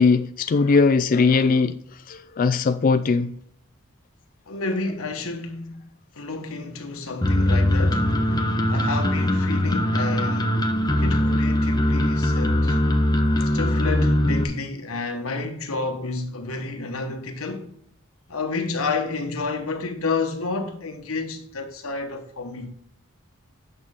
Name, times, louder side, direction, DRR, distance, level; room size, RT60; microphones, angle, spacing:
voice 1, 0.0-1.8 2.1-3.3 13.4-13.5, left 4 dB, 40° left, 0.3 m, -19 dB
voice 2, 4.5-5.9 6.1-8.4 8.7-10.6 11.0-12.8 13.4-17.7 18.3-22.7, left 3 dB, 90° left, 1.3 m, -30 dB
sound 1, 7.2-14.4, left 1 dB, 20° left, 0.8 m, -21 dB
8.8 x 6.5 x 3.6 m
head